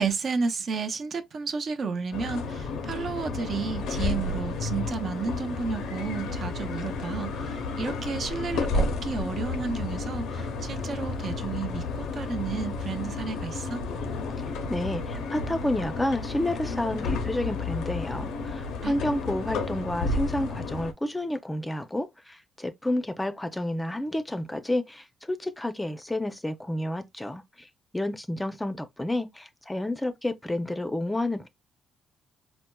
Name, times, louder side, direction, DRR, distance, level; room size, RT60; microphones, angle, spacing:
voice 1, 0.0-13.8 18.8-19.0, right 5 dB, 50° right, 0.5 m, -32 dB
sound 1, 2.1-20.9, left 3 dB, 85° left, 0.5 m, -31 dB
voice 2, 14.4-27.7 27.9-31.5, left 1 dB, 10° left, 0.5 m, -30 dB
4.1 x 2.0 x 2.2 m
cardioid pair, 90°, 0 cm